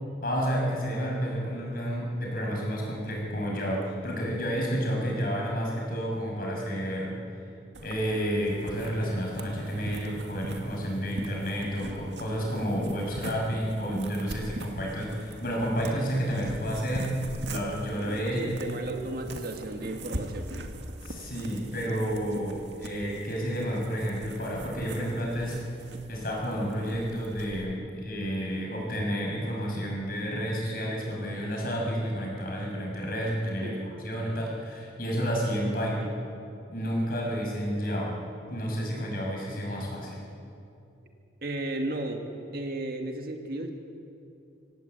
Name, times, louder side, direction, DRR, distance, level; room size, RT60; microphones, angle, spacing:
voice 1, 0.2-7.2 7.8-17.2 17.4-18.4 21.0-25.6 26.1-36.0 36.7-38.2 38.5-40.2, equal, 50° left, -2 dB, 6.8 m, -30 dB
sound 1, 7.7-27.7, right 1 dB, 75° right, 2.1 m, -41 dB
voice 2, 18.3-20.6 33.6-33.9 35.9-36.2 41.4-42.3 42.5-43.7, right 1 dB, 55° right, 4 dB, 2.1 m, -34 dB
25.5 x 17.0 x 8.4 m, 2.7 s
head